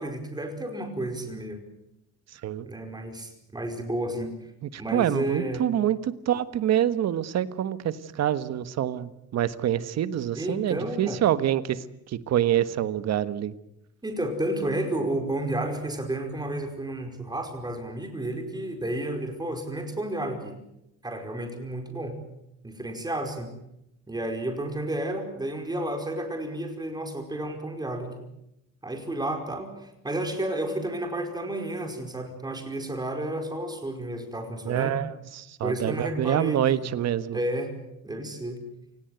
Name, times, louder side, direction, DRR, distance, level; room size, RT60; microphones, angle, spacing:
voice 1, 0.0-1.6 2.6-4.3 4.8-5.7 10.3-11.2 14.0-20.6 21.0-22.2 22.6-23.6 24.1-28.2 28.8-34.9 35.6-36.9 37.3-37.7 38.0-38.6, right 1 dB, 15° right, 5 dB, 4.9 m, -31 dB
voice 2, 4.6-13.5 34.6-37.4, right 11 dB, 60° right, 13 dB, 1.4 m, -26 dB
28.0 x 18.5 x 8.1 m, 0.85 s
cardioid pair, 135°, 30 cm